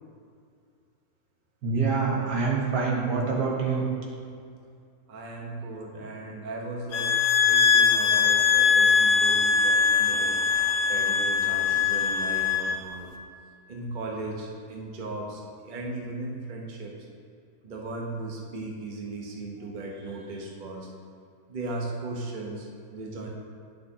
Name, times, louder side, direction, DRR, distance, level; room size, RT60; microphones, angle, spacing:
voice 1, 1.6-3.8, right 4 dB, 80° right, -2 dB, 1.8 m, -26 dB
voice 2, 5.1-10.4 10.9-13.1 13.7-17.0 17.6-20.9 21.5-23.3, right 2 dB, 35° right, -1 dB, 0.9 m, -37 dB
sound 1, 6.9-12.8, left 6 dB, 80° left, 1.3 m, -22 dB
10.5 x 6.2 x 2.8 m, 2.3 s
omnidirectional pair, 1.7 m